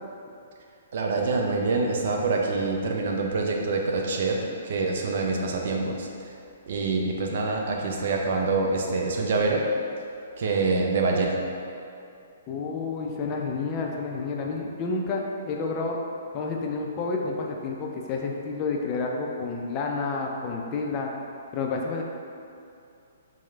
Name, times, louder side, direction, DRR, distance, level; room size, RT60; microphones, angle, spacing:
voice 1, 0.9-6.1 6.7-9.6 10.4-11.4, right 3 dB, 50° right, 0 dB, 0.4 m, -25 dB
voice 2, 12.5-16.0 16.3-21.1 21.5-22.0, left 4 dB, 25° left, 0 dB, 0.3 m, -30 dB
4.5 x 2.0 x 3.3 m, 2.6 s
figure-of-eight pair, 120°, 0 cm